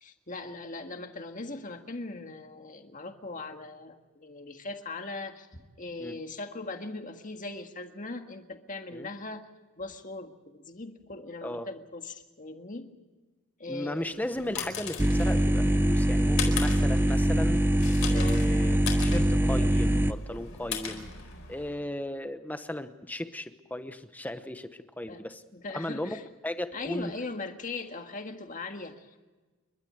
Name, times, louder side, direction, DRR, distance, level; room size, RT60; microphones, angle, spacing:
voice 1, 0.0-9.5 9.8-12.9 13.6-14.2 18.1-18.5 25.1-25.2 25.5-26.2 26.7-29.2, left 3 dB, 35° left, 5 dB, 1.8 m, -40 dB
voice 2, 13.7-17.6 18.1-21.1 21.5-25.4 25.7-27.1, left 1 dB, 5° left, 10 dB, 1.0 m, -36 dB
sound 1, 14.0-21.8, left 6 dB, 60° left, 4.4 m, -39 dB
sound 2, 15.0-20.1, right 1 dB, 10° right, 0.6 m, -23 dB
30.0 x 13.0 x 7.9 m, 1.2 s
head